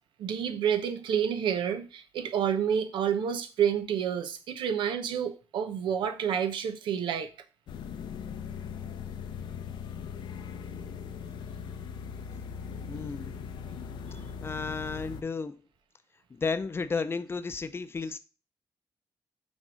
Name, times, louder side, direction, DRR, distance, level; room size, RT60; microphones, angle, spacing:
voice 1, 0.2-7.3, right 8 dB, 85° right, 0.9 m, -29 dB
sound 1, 7.7-15.2, left 6 dB, 90° left, 0.8 m, -39 dB
voice 2, 12.9-13.4 14.4-15.6 16.3-18.2, left 4 dB, 30° left, 0.6 m, -33 dB
6.3 x 3.7 x 6.2 m
cardioid pair, 100°, 8 cm